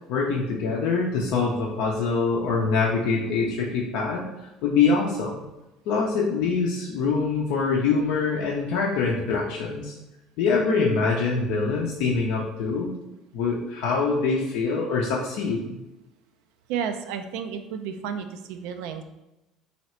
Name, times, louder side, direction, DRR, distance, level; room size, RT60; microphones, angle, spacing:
voice 1, 0.1-4.3 4.6-5.4 5.9-9.9 10.4-12.9 13.3-15.8, left 4 dB, 65° left, -3 dB, 0.5 m, -24 dB
voice 2, 16.7-19.0, right 7 dB, 65° right, 8 dB, 0.3 m, -32 dB
3.1 x 2.8 x 4.2 m, 0.97 s
hypercardioid pair, 60°, 0 cm